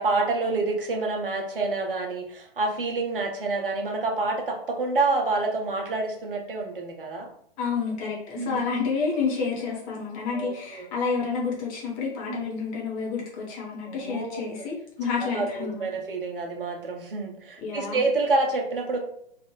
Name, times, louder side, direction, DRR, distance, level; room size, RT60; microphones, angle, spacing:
voice 1, 0.0-7.3 8.3-8.6 10.3-10.8 12.3-12.4 13.9-14.4 15.2-19.0, right 3 dB, 60° right, 1 dB, 0.9 m, -28 dB
voice 2, 7.6-15.9 17.6-18.0, left 5 dB, 25° left, -3 dB, 0.9 m, -29 dB
3.0 x 2.5 x 3.1 m, 0.68 s
figure-of-eight pair, 120°, 31 cm